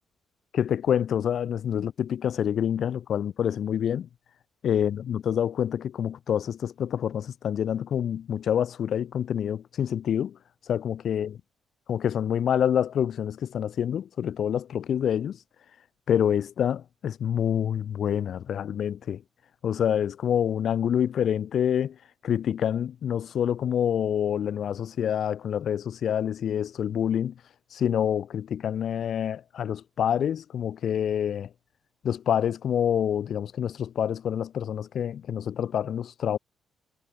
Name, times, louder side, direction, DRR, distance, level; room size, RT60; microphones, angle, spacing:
voice 1, 0.5-4.1 4.6-10.4 10.7-11.4 11.9-15.4 16.1-19.2 19.6-21.9 22.2-27.3 27.7-31.5 32.0-36.4, left 9 dB, 65° left, 1.0 m, -27 dB
cardioid pair, 75°, 0 cm